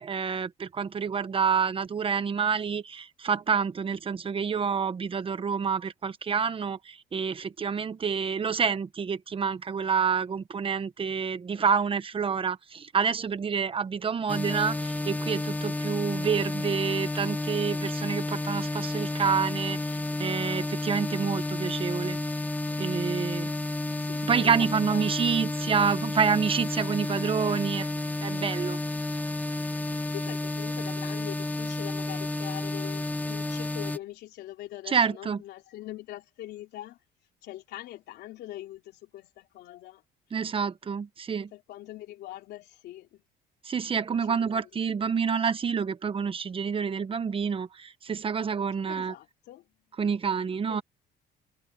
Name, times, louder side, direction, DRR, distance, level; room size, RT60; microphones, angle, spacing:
voice 1, 0.0-22.2 22.8-23.5 24.2-27.9 28.2-28.8 34.9-35.4 40.3-41.5 43.6-49.1 50.0-50.8, right 6 dB, 30° right, 1.1 m, -28 dB
sound 1, 14.3-34.0, left 2 dB, 10° left, 1.1 m, -31 dB
voice 2, 24.0-25.3 30.1-37.0 37.4-40.0 41.5-43.2 44.3-44.7 48.9-49.7 50.7-50.8, left 14 dB, 80° left, 3.3 m, -43 dB
cardioid pair, 110°, 17 cm